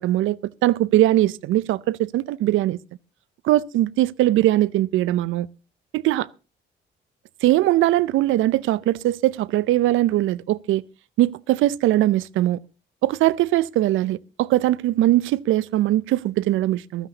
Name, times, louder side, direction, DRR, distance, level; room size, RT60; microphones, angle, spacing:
voice 1, 0.0-2.8 3.4-5.5 5.9-6.3 7.4-10.8 11.2-12.6 13.0-17.1, right 15 dB, 85° right, 0.6 m, -21 dB
15.0 x 13.0 x 4.0 m
cardioid pair, 90°, 20 cm